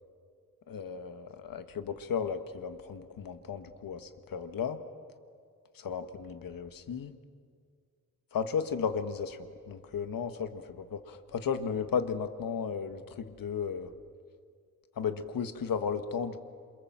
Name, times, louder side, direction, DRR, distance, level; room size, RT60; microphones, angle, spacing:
voice 1, 0.7-4.8 5.7-7.1 8.3-9.4 9.7-13.9 15.0-16.4, left 6 dB, 80° left, 8 dB, 1.6 m, -34 dB
28.0 x 27.0 x 7.5 m, 2.1 s
wide cardioid pair, 170°, 34 cm